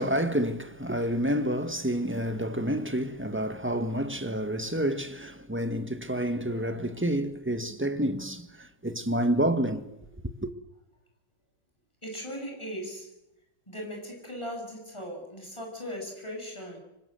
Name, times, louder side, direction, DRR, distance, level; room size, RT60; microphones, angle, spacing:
voice 1, 0.0-9.9 10.4-10.5, right 1 dB, 5° right, 1.4 m, -29 dB
voice 2, 12.0-13.1 13.7-16.8, equal, 15° left, 7.8 m, -38 dB
26.5 x 24.5 x 7.8 m
omnidirectional pair, 2.0 m